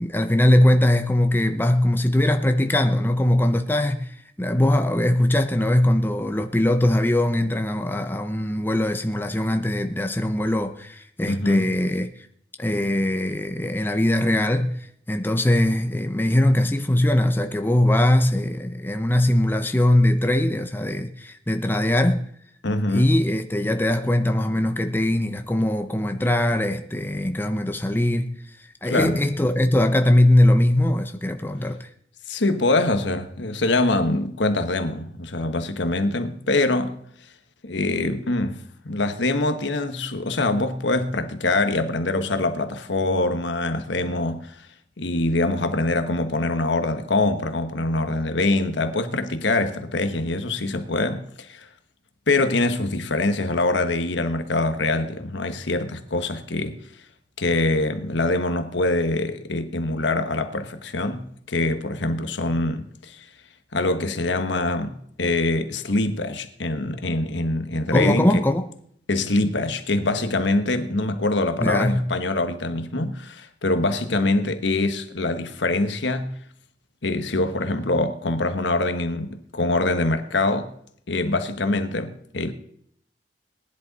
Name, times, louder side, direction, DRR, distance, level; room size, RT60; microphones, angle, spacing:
voice 1, 0.0-12.3 12.6-22.3 22.9-31.9 67.9-68.7 71.6-72.1, left 1 dB, 10° left, 0.7 m, -21 dB
voice 2, 11.2-11.7 22.6-23.1 28.8-29.2 32.3-36.9 37.6-44.5 45.0-51.7 52.3-56.8 57.4-63.2 63.7-68.4 69.1-76.4 77.0-80.7 81.1-82.5, left 2 dB, 70° left, 1.2 m, -24 dB
19.0 x 11.0 x 4.1 m
head